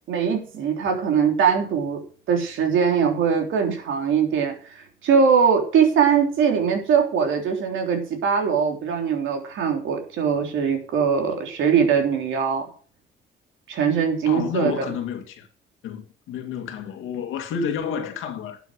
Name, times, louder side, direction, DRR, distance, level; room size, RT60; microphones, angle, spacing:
voice 1, 0.1-2.0 2.3-12.6 13.7-14.9, right 6 dB, 80° right, 3.6 m, -21 dB
voice 2, 14.2-15.5 15.8-18.6, left 7 dB, 90° left, 2.2 m, -30 dB
12.0 x 7.2 x 6.5 m
cardioid pair, 90°, 20 cm